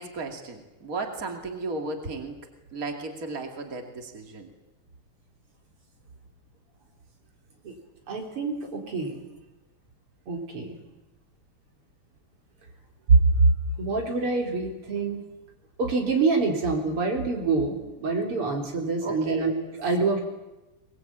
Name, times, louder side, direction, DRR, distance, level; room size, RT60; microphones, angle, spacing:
voice 1, 0.0-2.4 2.7-4.5 19.0-19.5, right 3 dB, 40° right, 4 dB, 3.0 m, -34 dB
voice 2, 8.1-9.2 10.3-10.7 13.1-13.2 13.8-15.2 15.8-20.2, right 4 dB, 90° right, 1 dB, 4.8 m, -25 dB
23.0 x 21.5 x 8.8 m, 1.0 s
omnidirectional pair, 2.4 m